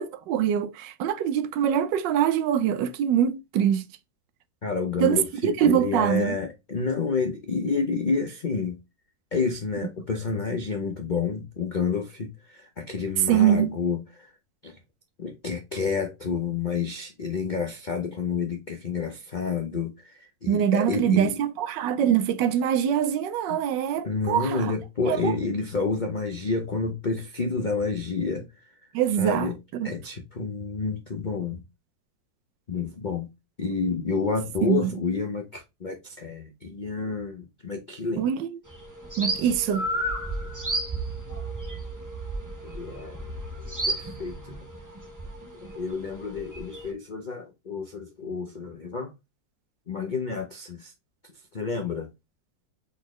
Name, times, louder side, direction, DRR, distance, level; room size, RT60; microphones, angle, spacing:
voice 1, 0.0-3.9 5.0-6.4 13.3-13.7 20.5-24.7 25.1-25.3 28.9-29.9 34.6-34.9 38.2-38.6 39.2-39.9, right 9 dB, 80° right, 1.2 m, -24 dB
voice 2, 4.6-8.8 9.3-14.3 14.6-14.7 15.2-21.3 23.5-23.6 24.0-28.5 29.2-29.6 29.8-31.6 32.7-33.3 33.6-38.3 42.6-43.2 43.9-44.6 45.6-49.1 49.9-50.9 51.5-52.1, left 4 dB, 70° left, 0.4 m, -29 dB
sound 1, 38.7-46.9, right 1 dB, 20° right, 0.6 m, -33 dB
4.2 x 4.0 x 3.0 m
omnidirectional pair, 2.0 m